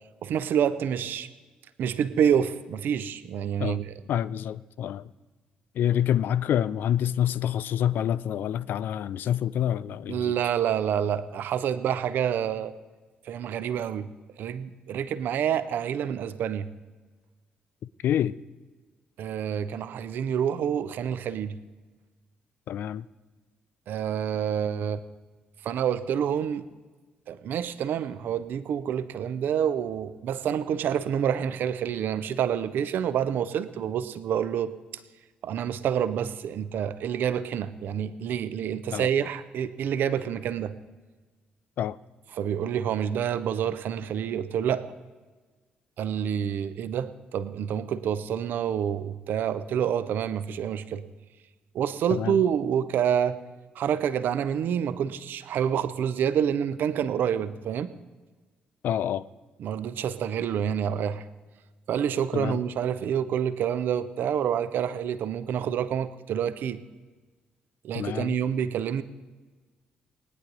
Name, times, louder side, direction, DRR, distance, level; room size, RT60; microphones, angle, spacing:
voice 1, 0.2-1.3 1.8-3.9 10.1-12.7 13.2-14.1 14.4-16.7 19.2-21.6 23.9-25.0 25.6-26.7 27.3-34.7 35.4-40.7 42.3-44.9 46.0-51.0 51.7-53.4 53.7-57.9 59.6-61.2 61.9-66.8 67.8-69.0, right 8 dB, 55° right, 14 dB, 0.7 m, -28 dB
voice 2, 4.1-5.0 5.8-10.3 18.0-18.4 22.7-23.0 38.9-39.1 41.8-42.0 52.1-52.4 58.8-59.2 62.3-62.6 67.9-68.4, left 10 dB, 55° left, 18 dB, 0.4 m, -27 dB
20.0 x 10.0 x 4.0 m, 1.3 s
figure-of-eight pair, 40°, 4 cm